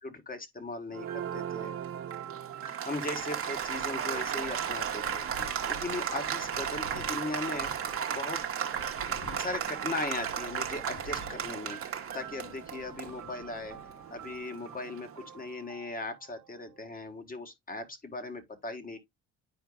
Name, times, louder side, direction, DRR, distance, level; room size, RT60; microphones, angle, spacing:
voice 1, 0.0-1.7 2.7-5.2 5.7-7.7 8.1-8.4 9.4-11.8 12.1-13.8 14.1-19.0, left 2 dB, 30° left, 1.6 m, -38 dB
Applause, 0.9-15.3, right 8 dB, 45° right, 1.0 m, -35 dB
sound 1, 1.1-16.9, right 10 dB, 75° right, 0.9 m, -48 dB
Wind, 2.9-14.4, left 1 dB, 70° left, 1.4 m, -50 dB
10.0 x 4.5 x 2.3 m
cardioid pair, 90°, 30 cm